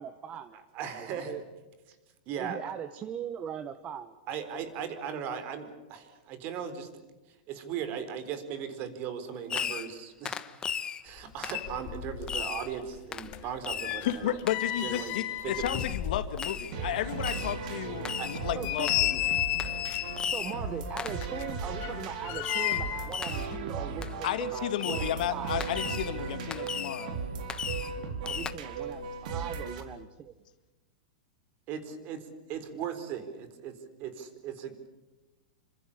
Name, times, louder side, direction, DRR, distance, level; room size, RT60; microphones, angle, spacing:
voice 1, 0.0-0.6 0.9-1.4 2.4-4.1 18.5-18.9 20.3-25.6 28.2-30.4, right 8 dB, 25° right, 12 dB, 1.1 m, -40 dB
voice 2, 0.7-1.3 2.3-2.7 4.3-6.9 7.5-10.6 11.0-14.4 14.8-15.7 18.2-18.3 31.7-34.7, right 7 dB, 40° right, 10 dB, 4.2 m, -38 dB
Fireworks, 9.5-10.0 10.3-11.0 11.4-11.7 12.3-12.7 13.1-13.3 13.6-14.0 14.5-14.6 15.7-16.0 16.4-16.7 17.2-17.6 18.1-18.4 18.8-19.2 19.6-19.7 20.2-20.6 21.0-21.2 22.4-22.8 23.1-23.5 24.0-24.1 24.8-25.2 25.6-26.1 26.5-27.1 27.5-28.0 28.3-28.5, left 7 dB, 20° left, 1.1 m, -36 dB
sound 1, 11.2-11.3 11.5-12.4 12.7-16.7 17.0-17.1 17.7-17.8 18.3-20.3 21.1-23.1 23.4-23.6, left 14 dB, 40° left, 2.6 m, -33 dB
voice 3, 14.1-19.5 24.2-27.2, left 11 dB, 70° left, 11 dB, 2.0 m, -33 dB
sound 2, 16.7-29.8, right 4 dB, 60° right, 4.2 m, -37 dB
27.5 x 25.5 x 7.2 m, 1.1 s
supercardioid pair, 140°, 5 cm